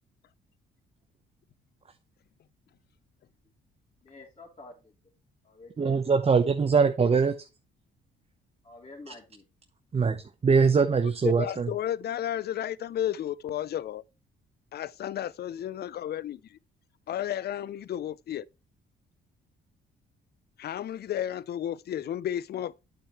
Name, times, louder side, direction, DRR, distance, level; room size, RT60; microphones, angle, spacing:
voice 1, 4.0-4.9 5.4-6.2 8.6-9.4, left 2 dB, 30° left, 3.3 m, -49 dB
voice 2, 5.8-7.5 9.9-11.7, right 5 dB, 30° right, 0.9 m, -23 dB
voice 3, 11.2-14.0 14.7-16.6 17.1-18.5 20.6-22.7, left 11 dB, 55° left, 0.5 m, -32 dB
8.6 x 6.8 x 3.1 m
cardioid pair, 90°, 20 cm